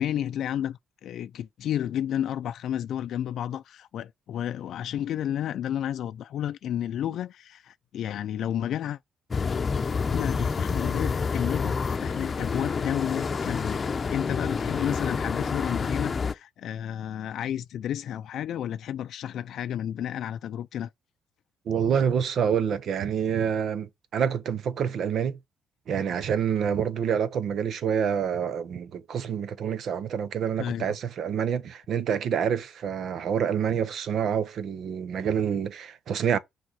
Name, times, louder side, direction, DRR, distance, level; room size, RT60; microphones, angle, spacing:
voice 1, 0.0-9.0 10.1-13.8 14.1-20.9 30.6-30.9, left 10 dB, 75° left, 0.4 m, -31 dB
sound 1, 9.3-16.3, left 5 dB, 35° left, 0.7 m, -28 dB
voice 2, 21.7-25.4 25.9-36.4, right 7 dB, 65° right, 0.9 m, -27 dB
6.4 x 4.2 x 4.9 m
cardioid pair, 90°, 0 cm